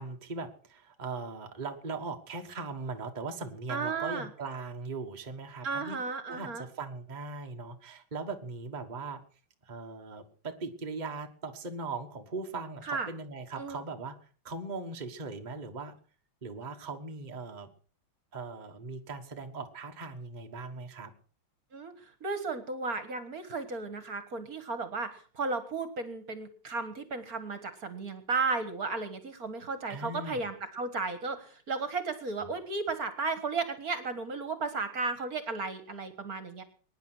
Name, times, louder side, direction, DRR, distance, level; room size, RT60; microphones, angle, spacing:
voice 1, 0.0-6.0 6.3-9.2 9.6-14.2 14.4-15.9 16.4-17.7 18.3-21.1 29.9-30.5 32.4-32.6, right 3 dB, 25° right, 4 dB, 1.5 m, -39 dB
voice 2, 3.7-4.3 5.6-6.7 12.8-13.1 13.6-13.8 21.7-21.9 22.2-25.1 25.4-36.6, right 4 dB, 45° right, 11 dB, 1.8 m, -34 dB
22.0 x 10.0 x 6.2 m, 0.43 s
omnidirectional pair, 2.2 m